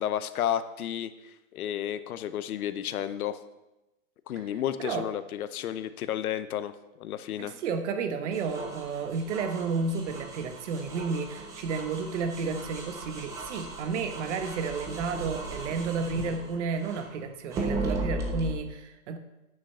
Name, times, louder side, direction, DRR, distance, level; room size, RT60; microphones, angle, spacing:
voice 1, 0.0-3.4 4.3-6.7 7.0-7.5, left 10 dB, 75° left, 12 dB, 0.8 m, -32 dB
voice 2, 7.4-19.2, right 5 dB, 55° right, 9 dB, 1.2 m, -32 dB
sound 1, 8.3-17.1 17.5-18.5, right 2 dB, 10° right, 0.4 m, -37 dB
9.2 x 6.5 x 5.5 m, 0.98 s
hypercardioid pair, 145°, 43 cm